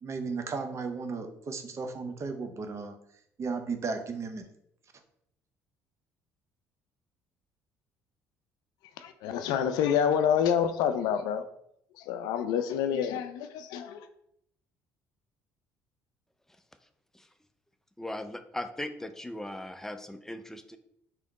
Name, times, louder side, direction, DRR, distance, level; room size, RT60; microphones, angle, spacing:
voice 1, 0.0-2.9 3.4-4.5, right 4 dB, 40° right, 7 dB, 0.6 m, -35 dB
voice 2, 9.0-11.4 12.1-14.1, left 8 dB, 70° left, 9 dB, 0.4 m, -27 dB
voice 3, 18.0-20.8, left 1 dB, 5° left, 9 dB, 0.5 m, -38 dB
3.5 x 2.9 x 3.5 m, 0.74 s
hypercardioid pair, 60°, 7 cm